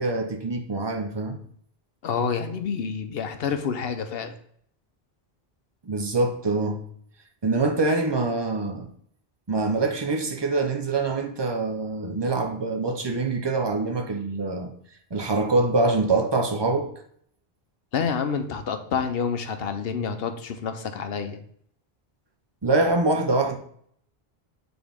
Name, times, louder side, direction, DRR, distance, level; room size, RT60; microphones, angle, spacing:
voice 1, 0.0-1.4 5.8-6.8 7.4-8.9 9.5-14.7 15.1-16.9 22.6-23.6, right 3 dB, 30° right, 0.7 m, -24 dB
voice 2, 2.0-4.3 17.9-21.4, left 6 dB, 70° left, 0.9 m, -28 dB
7.1 x 4.0 x 3.5 m
omnidirectional pair, 1.0 m